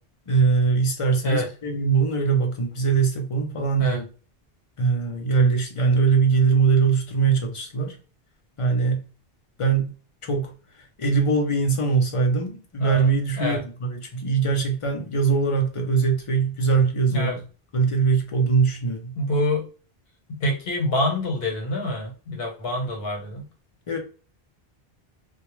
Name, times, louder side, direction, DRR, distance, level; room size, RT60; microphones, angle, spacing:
voice 1, 0.3-4.1 4.8-8.0 8.6-9.1 9.6-9.9 10.2-10.5 11.0-17.4 17.7-19.1 23.9-24.0, right 5 dB, 40° left, 0.5 m, -22 dB
voice 2, 19.1-19.6 20.3-23.5, left 1 dB, 70° left, 1.1 m, -26 dB
2.2 x 2.1 x 3.0 m
omnidirectional pair, 1.0 m